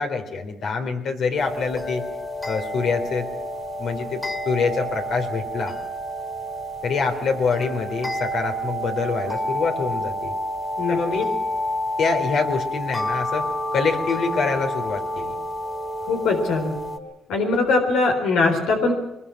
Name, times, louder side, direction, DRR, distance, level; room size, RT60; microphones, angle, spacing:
voice 1, 0.0-2.0 2.5-3.3 3.8-5.8 6.8-10.3 10.9-11.2 12.0-15.3, left 4 dB, 65° left, 5 dB, 4.0 m, -25 dB
sound 1, 1.4-17.0, equal, 20° left, 3.5 m, -29 dB
voice 2, 10.8-11.3 16.1-16.7 17.3-18.9, left 3 dB, 90° left, 2 dB, 4.0 m, -21 dB
23.0 x 21.5 x 6.0 m, 0.90 s
cardioid pair, 90°, 0 cm